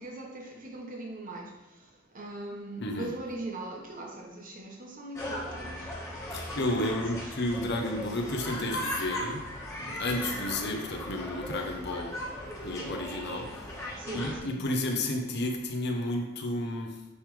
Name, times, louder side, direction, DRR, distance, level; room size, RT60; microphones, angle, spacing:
voice 1, 0.0-1.5 2.1-5.9 6.6-7.4 14.0-14.6, right 2 dB, 40° right, 0 dB, 1.0 m, -40 dB
sound 1, 5.1-14.4, left 1 dB, 15° left, 1.3 m, -38 dB
voice 2, 6.3-12.2 12.6-13.8 14.1-17.1, left 1 dB, 55° left, 3 dB, 0.9 m, -32 dB
9.5 x 3.4 x 3.3 m, 0.99 s
head